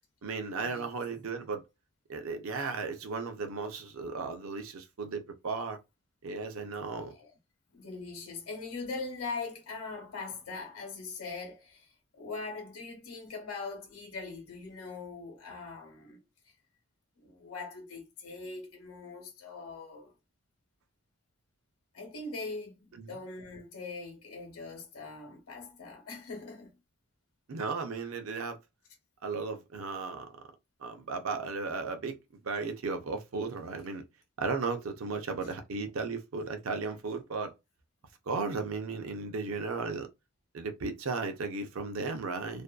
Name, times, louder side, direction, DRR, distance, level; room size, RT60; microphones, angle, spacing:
voice 1, 0.2-1.6 2.1-5.8 6.2-7.1 22.9-23.1 27.5-28.6 29.2-30.5 30.8-32.2 32.4-34.0 34.4-37.5 38.3-40.1 40.5-42.6, right 4 dB, 60° right, 0.5 m, -35 dB
voice 2, 7.7-16.2 17.2-20.1 21.9-26.7, left 3 dB, 70° left, 0.9 m, -41 dB
2.5 x 2.2 x 2.3 m
head